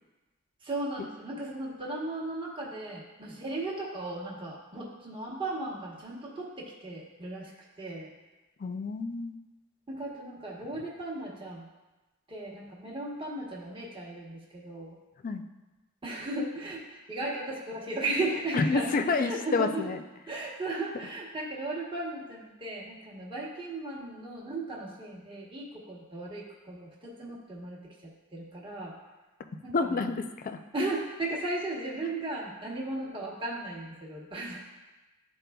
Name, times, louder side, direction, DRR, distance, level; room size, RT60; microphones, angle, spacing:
voice 1, 0.6-7.5 7.8-8.1 9.9-11.7 12.3-15.0 16.0-19.9 20.3-27.9 28.3-28.9 29.6-30.2 30.7-34.6, right 2 dB, 25° right, -4 dB, 1.0 m, -36 dB
voice 2, 8.6-9.3 15.2-15.4 18.5-20.0 29.7-30.6, left 4 dB, 40° left, 7 dB, 0.4 m, -28 dB
12.5 x 4.2 x 2.3 m, 1.1 s
head